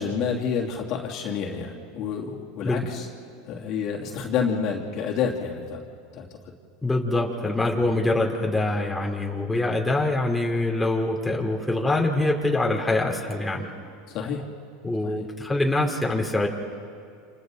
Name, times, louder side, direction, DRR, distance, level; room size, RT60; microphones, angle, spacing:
voice 1, 0.0-3.0 3.5-5.8 6.1-6.3 14.1-14.5 15.0-15.2, left 6 dB, 55° left, -1 dB, 3.0 m, -29 dB
voice 2, 6.8-13.7 14.8-16.5, left 2 dB, 5° left, -1 dB, 3.3 m, -24 dB
29.5 x 27.5 x 4.0 m, 2.4 s
hypercardioid pair, 100°, 0 cm